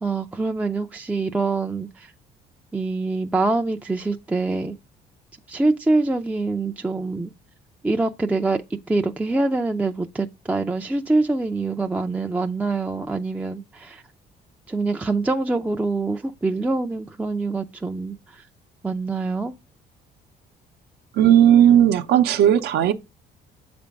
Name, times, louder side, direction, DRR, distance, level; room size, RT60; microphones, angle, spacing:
voice 1, 0.0-2.1 2.7-4.8 5.5-7.3 7.8-8.6 8.9-14.0 14.7-18.4 18.8-19.5, right 3 dB, 10° right, 0.4 m, -25 dB
voice 2, 21.1-22.9, right 10 dB, 75° right, 0.7 m, -15 dB
7.4 x 3.4 x 5.1 m
cardioid pair, 110°, 17 cm